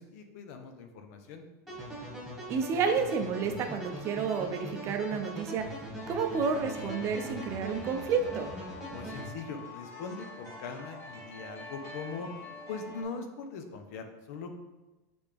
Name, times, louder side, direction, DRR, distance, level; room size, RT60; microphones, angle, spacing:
voice 1, 0.0-1.4 8.9-12.3 12.7-14.6, left 4 dB, 65° left, 6 dB, 0.9 m, -41 dB
sound 1, 1.7-9.3, right 1 dB, ahead, 2.0 m, -41 dB
voice 2, 2.5-8.5, right 5 dB, 30° right, 6 dB, 0.6 m, -30 dB
sound 2, 6.0-13.0, left 2 dB, 25° left, 1.6 m, -46 dB
8.0 x 3.5 x 3.5 m, 1.1 s
supercardioid pair, 155°, 9 cm